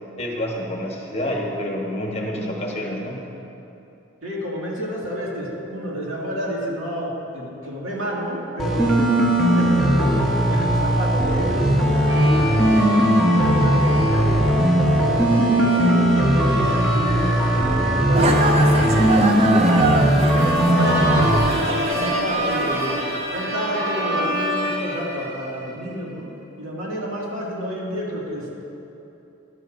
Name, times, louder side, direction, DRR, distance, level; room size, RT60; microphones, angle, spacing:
voice 1, 0.2-3.3, left 1 dB, 30° left, -1 dB, 1.1 m, -28 dB
voice 2, 4.2-9.1 9.4-14.6 15.0-19.8 20.3-26.3 26.6-28.5, equal, 80° right, -4 dB, 2.2 m, -30 dB
sound 1, 8.6-21.4, equal, ahead, 1.1 m, -18 dB
sound 2, 12.1-25.8, right 1 dB, 50° right, 1.3 m, -29 dB
sound 3, 18.1-23.7, right 2 dB, 30° right, 0.6 m, -25 dB
13.5 x 11.0 x 2.6 m, 2.9 s
head